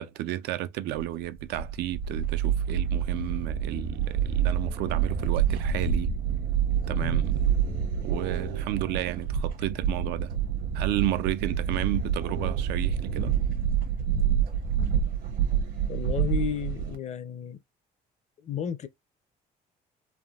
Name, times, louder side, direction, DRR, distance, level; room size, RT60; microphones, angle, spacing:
voice 1, 0.0-6.1 6.9-7.5 8.0-10.3 10.7-13.4, right 14 dB, 80° right, 0.4 m, -32 dB
sound 1, 1.0-17.0, right 8 dB, 60° right, 0.9 m, -27 dB
voice 2, 15.9-17.6 18.4-18.9, left 9 dB, 40° left, 0.5 m, -32 dB
3.4 x 2.2 x 2.3 m
cardioid pair, 110°, 17 cm